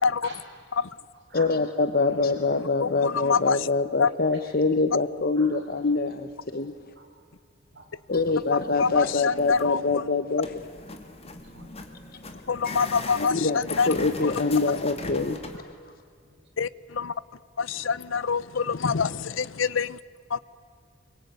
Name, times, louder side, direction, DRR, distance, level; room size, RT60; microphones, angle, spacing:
voice 1, 0.2-0.5 1.3-1.6 4.0-4.6 5.4-5.6 6.5-6.6 6.9-7.1 7.7-7.8 11.2-11.8 15.5-15.6, right 2 dB, 55° right, 0 dB, 6.5 m, -48 dB
voice 2, 1.3-6.7 8.1-10.6 12.6-12.7 13.1-15.4, left 3 dB, 50° left, 10 dB, 0.9 m, -25 dB
voice 3, 2.8-3.7 4.0-4.1 8.5-10.0 12.5-13.9 16.6-17.1 17.6-20.0 20.3-20.4, left 5 dB, 80° left, 19 dB, 0.7 m, -26 dB
sound 1, 8.1-9.0 9.4-9.8 10.4-15.6, left 2 dB, 30° left, 2.2 m, -40 dB
25.5 x 23.0 x 9.4 m, 2.2 s
head